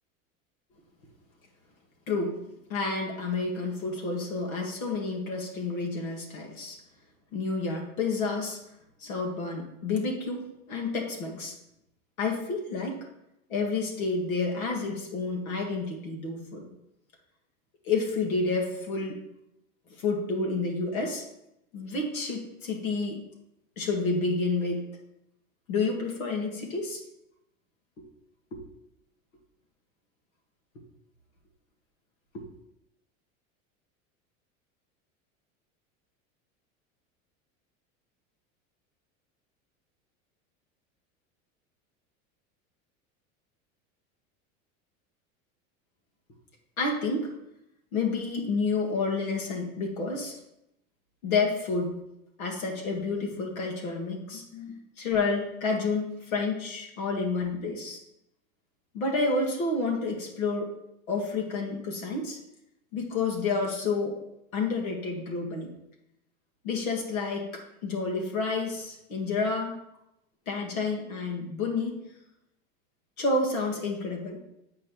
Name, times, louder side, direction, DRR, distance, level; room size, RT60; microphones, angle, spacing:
voice 1, 2.1-2.4 2.7-6.8 7.3-8.6 9.0-11.5 12.2-13.0 13.5-16.7 17.8-19.2 20.0-21.2 21.7-23.2 23.8-24.9 25.7-27.0 28.5-28.6 32.3-32.4 46.8-47.3 47.9-50.4 51.2-51.9 52.4-58.0 58.9-60.7 61.1-62.4 62.9-64.2 64.5-65.7 66.6-69.7 70.5-72.0 73.2-74.4, left 3 dB, 85° left, 0 dB, 1.8 m, -29 dB
7.7 x 4.8 x 4.6 m, 0.82 s
hypercardioid pair, 90°, 41 cm